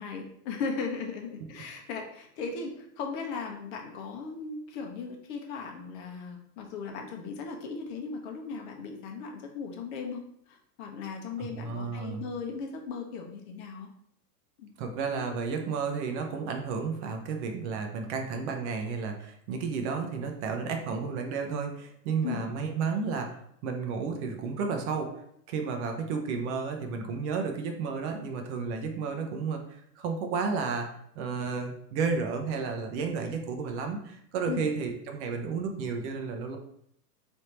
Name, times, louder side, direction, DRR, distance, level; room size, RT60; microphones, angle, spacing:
voice 1, 0.0-10.2 10.5-13.9 14.6-14.7 22.2-22.4 34.5-34.7, left 5 dB, 45° left, 2 dB, 0.8 m, -37 dB
voice 2, 11.4-12.2 14.8-23.4 23.6-25.2 25.5-30.9 31.2-36.6, right 5 dB, 45° right, 4 dB, 0.7 m, -32 dB
3.5 x 2.6 x 4.3 m, 0.71 s
hypercardioid pair, 135°, 49 cm